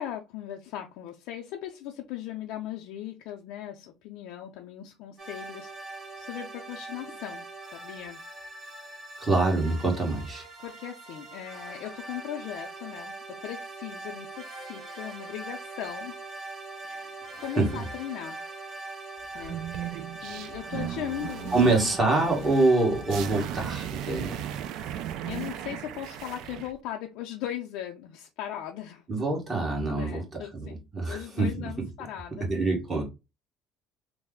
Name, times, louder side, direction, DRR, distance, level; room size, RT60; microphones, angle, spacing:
voice 1, 0.0-8.2 10.6-16.2 16.8-18.4 19.3-22.4 24.7-24.9 25.2-29.0 29.9-32.8, left 11 dB, 75° left, 0.4 m, -39 dB
sound 1, 5.2-23.4, right 2 dB, 45° right, 1.1 m, -42 dB
voice 2, 9.2-10.4 17.4-17.8 21.5-24.4 29.1-30.2 30.5-31.7 32.5-33.0, right 2 dB, 20° right, 1.4 m, -25 dB
sound 2, 19.3-26.7, right 10 dB, 65° right, 0.3 m, -37 dB
3.1 x 2.0 x 3.5 m
cardioid pair, 120°, 0 cm